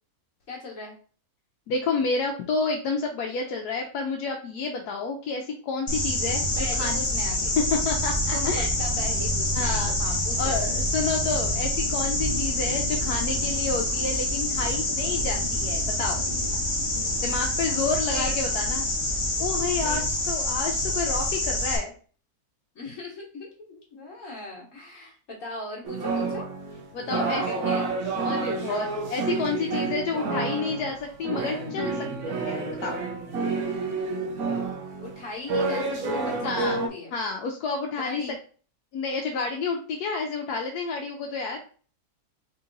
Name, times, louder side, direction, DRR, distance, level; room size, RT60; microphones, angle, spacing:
voice 1, 0.5-0.9 6.6-7.6 8.3-10.6 12.5-12.6 18.1-18.3 19.8-20.0 22.7-26.4 27.1-28.1 35.0-37.1 37.9-38.4, left 2 dB, 55° left, -2 dB, 1.4 m, -38 dB
voice 2, 1.7-7.0 7.7-8.7 9.5-9.9 10.4-16.2 17.2-18.9 19.4-21.9 25.0-25.1 26.9-27.4 28.2-33.0 36.4-36.8 37.1-38.2 38.9-41.6, left 4 dB, 85° left, 1 dB, 1.1 m, -30 dB
sound 1, 5.9-21.8, left 1 dB, 25° left, 0.8 m, -26 dB
sound 2, 25.8-36.9, right 3 dB, 75° right, 1.2 m, -29 dB
3.7 x 2.8 x 3.8 m, 0.40 s
omnidirectional pair, 1.6 m